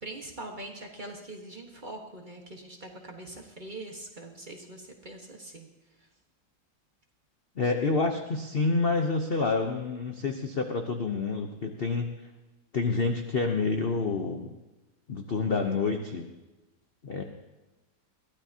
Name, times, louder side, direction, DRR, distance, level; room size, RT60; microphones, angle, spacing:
voice 1, 0.0-5.7 6.0-6.1, right 2 dB, 30° right, 2 dB, 1.3 m, -43 dB
voice 2, 7.6-12.1 12.7-14.5 15.1-16.3 17.0-17.2, left 4 dB, 50° left, 4 dB, 0.7 m, -28 dB
21.5 x 15.5 x 2.8 m, 1.1 s
omnidirectional pair, 2.1 m